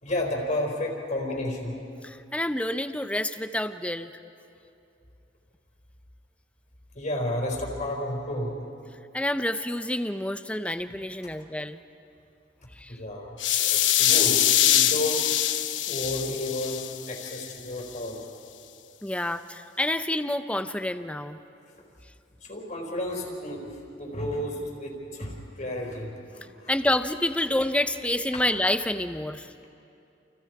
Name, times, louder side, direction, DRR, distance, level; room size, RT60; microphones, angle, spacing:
voice 1, 0.0-1.8 6.9-8.6 10.8-11.0 11.2-11.3 12.9-15.4 15.8-18.3 22.4-26.7 28.3-28.4, left 1 dB, 45° left, -2 dB, 4.6 m, -32 dB
voice 2, 2.0-4.1 9.1-11.8 12.8-12.9 19.0-21.4 26.7-29.5, left 1 dB, 5° left, 10 dB, 0.6 m, -28 dB
sound 1, 13.4-17.5, left 12 dB, 80° left, 1.0 m, -23 dB
29.0 x 29.0 x 4.8 m, 2.6 s
head